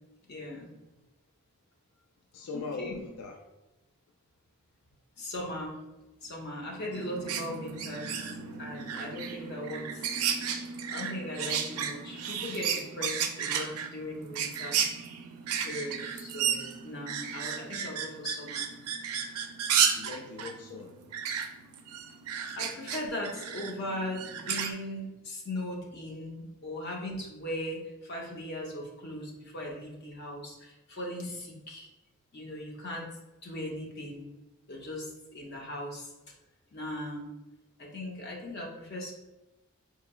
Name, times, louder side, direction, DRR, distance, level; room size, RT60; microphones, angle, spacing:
voice 1, 0.3-0.7 2.5-3.0 5.2-5.8 6.2-8.3 8.6-10.2 10.9-14.8 15.6-18.7 22.6-31.9 32.3-33.1 33.4-34.3 34.7-36.1 36.7-37.3 37.8-39.1, left 1 dB, 50° left, -1 dB, 0.7 m, -38 dB
voice 2, 2.3-3.4 19.9-21.0, left 3 dB, 85° left, 2 dB, 0.4 m, -40 dB
sound 1, 6.9-24.7, right 7 dB, 85° right, 0.4 m, -33 dB
3.9 x 2.8 x 2.2 m, 1.0 s
head